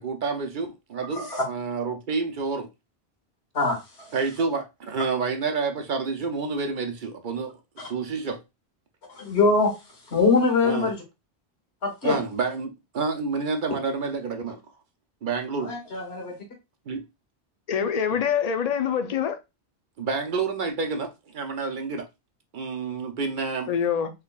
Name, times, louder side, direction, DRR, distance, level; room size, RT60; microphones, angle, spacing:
voice 1, 0.0-2.7 4.1-8.4 10.6-10.9 12.0-14.6 15.2-15.7 16.9-17.0 20.0-22.1 22.5-23.7, right 4 dB, 55° right, 0.7 m, -29 dB
voice 2, 1.1-1.4 3.5-4.1 7.8-7.9 9.2-9.8 10.1-11.0 11.8-12.2 15.6-16.3, left 3 dB, 80° left, 1.7 m, -23 dB
voice 3, 17.7-19.4 23.7-24.2, left 7 dB, 45° left, 0.6 m, -25 dB
3.6 x 3.2 x 2.3 m
omnidirectional pair, 1.1 m